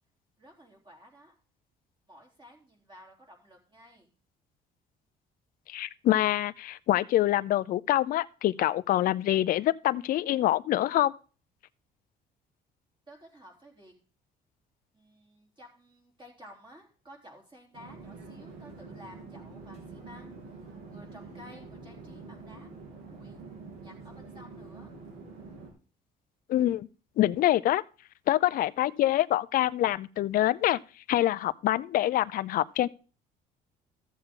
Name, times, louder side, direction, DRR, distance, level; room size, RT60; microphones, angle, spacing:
voice 1, 0.4-1.3 2.1-4.1 13.1-13.9 14.9-20.3 20.9-22.7 23.0-23.5 23.8-24.9, equal, 30° right, 3.5 m, -53 dB
voice 2, 5.7-11.1 26.5-26.9 27.2-27.8 28.3-30.8 31.1-32.9, left 14 dB, 55° left, 0.5 m, -25 dB
Conversation / Chatter / Fixed-wing aircraft airplane, 17.7-25.7, right 3 dB, 80° right, 3.1 m, -46 dB
13.5 x 7.2 x 3.8 m
cardioid pair, 110°, 17 cm